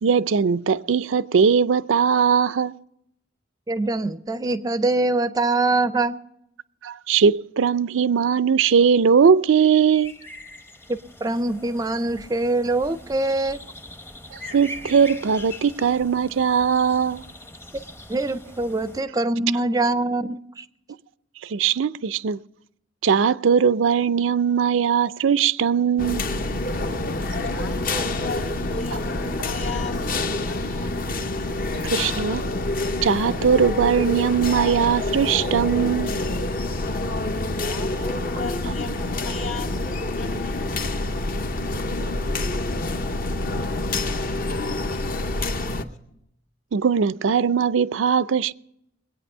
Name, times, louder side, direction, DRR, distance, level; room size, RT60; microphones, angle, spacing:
voice 1, 0.0-2.7 6.8-10.1 14.5-17.2 21.4-22.4 23.0-26.2 31.9-32.4 33.0-36.1 46.7-48.5, right 6 dB, 80° right, 0.4 m, -20 dB
voice 2, 3.7-6.1 11.2-13.6 18.1-20.6, right 2 dB, 20° right, 0.4 m, -23 dB
sound 1, 9.5-19.0, left 1 dB, 15° left, 0.7 m, -42 dB
sound 2, 26.0-45.8, left 2 dB, 45° left, 0.8 m, -27 dB
voice 3, 27.4-31.0 37.6-40.7 46.1-46.2, left 3 dB, 80° left, 2.2 m, -35 dB
22.0 x 8.8 x 5.5 m
head